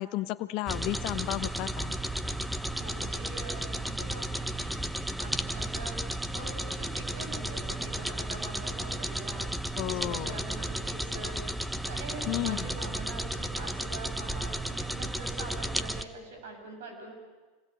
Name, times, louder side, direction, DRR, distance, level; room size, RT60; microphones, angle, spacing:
voice 1, 0.0-1.9 9.8-10.5 12.3-12.7, left 16 dB, 55° left, 12 dB, 1.2 m, -33 dB
sound 1, 0.7-16.0, right 1 dB, 5° right, 1.2 m, -34 dB
voice 2, 2.8-4.8 5.2-17.1, right 2 dB, 75° right, 4 dB, 7.5 m, -44 dB
27.0 x 20.0 x 9.0 m, 1.4 s
hypercardioid pair, 100°, 0 cm